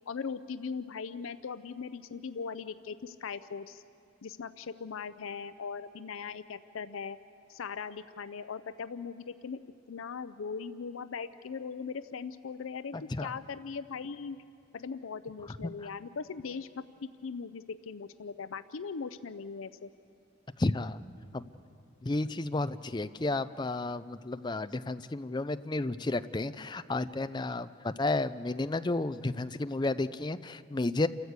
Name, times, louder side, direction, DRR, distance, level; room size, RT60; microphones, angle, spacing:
voice 1, 0.1-3.8 4.2-7.2 7.5-9.6 9.9-14.4 14.7-19.9, left 5 dB, 85° left, 12 dB, 0.5 m, -39 dB
voice 2, 20.6-21.0 21.3-21.5 22.0-31.1, left 2 dB, 20° left, 12 dB, 0.4 m, -32 dB
29.0 x 14.0 x 8.2 m, 2.5 s
head